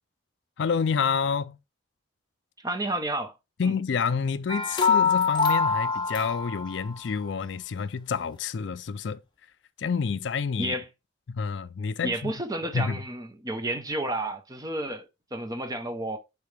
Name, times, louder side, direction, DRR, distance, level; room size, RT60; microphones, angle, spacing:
voice 1, 0.6-1.6 3.6-9.2 9.8-10.7 11.3-12.3 12.7-13.0, left 5 dB, 65° left, 0.4 m, -28 dB
voice 2, 2.6-3.3 3.6-3.7 10.6-10.8 12.0-16.2, right 1 dB, 20° right, 0.8 m, -31 dB
sound 1, 4.5-7.0, left 5 dB, 25° left, 0.8 m, -24 dB
6.8 x 4.8 x 3.3 m
head